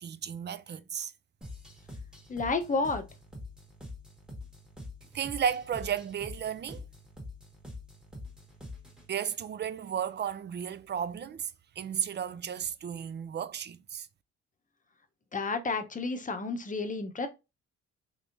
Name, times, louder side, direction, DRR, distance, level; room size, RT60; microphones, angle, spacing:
voice 1, 0.0-1.1 5.1-6.8 9.1-11.5 11.8-14.1, right 8 dB, 35° right, 0.4 m, -34 dB
sound 1, 1.4-9.1, left 2 dB, ahead, 1.2 m, -45 dB
voice 2, 2.3-3.0 15.3-17.3, left 3 dB, 25° left, 0.8 m, -31 dB
3.5 x 3.3 x 2.6 m
cardioid pair, 90°, 30 cm